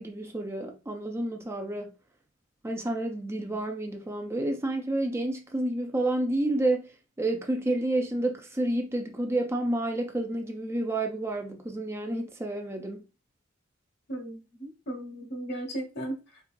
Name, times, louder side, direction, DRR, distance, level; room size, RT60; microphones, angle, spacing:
voice 1, 0.0-1.9 2.6-6.9 7.2-13.0, right 1 dB, 15° right, 0.4 m, -30 dB
voice 2, 14.1-16.4, right 1 dB, 55° left, 1.2 m, -36 dB
4.6 x 2.4 x 2.5 m
head